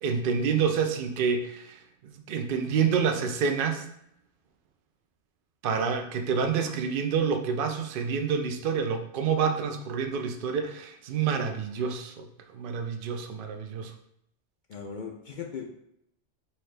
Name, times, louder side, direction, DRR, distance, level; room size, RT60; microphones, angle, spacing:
voice 1, 0.0-3.8 5.6-12.3 12.5-13.9, right 6 dB, 60° right, 6 dB, 0.6 m, -28 dB
voice 2, 14.7-15.8, left 6 dB, 55° left, 2 dB, 0.6 m, -39 dB
5.6 x 2.6 x 3.3 m, 0.75 s
omnidirectional pair, 1.2 m